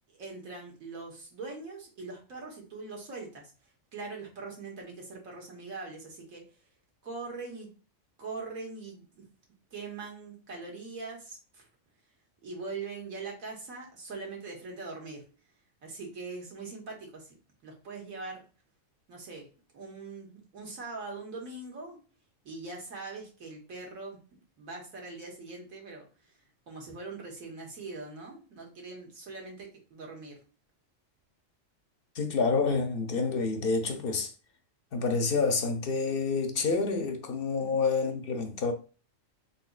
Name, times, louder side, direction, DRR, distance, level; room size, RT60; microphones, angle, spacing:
voice 1, 0.1-3.5 3.9-6.4 7.0-7.7 8.2-9.2 9.7-11.7 12.4-15.2 15.8-18.4 19.1-19.5 19.7-22.0 22.4-24.2 24.6-26.4 26.7-30.4 37.6-37.8, right 3 dB, 85° right, 1.7 m, -42 dB
voice 2, 32.1-34.3 34.9-38.7, left 4 dB, 60° left, 0.7 m, -28 dB
4.1 x 3.9 x 2.4 m
omnidirectional pair, 1.4 m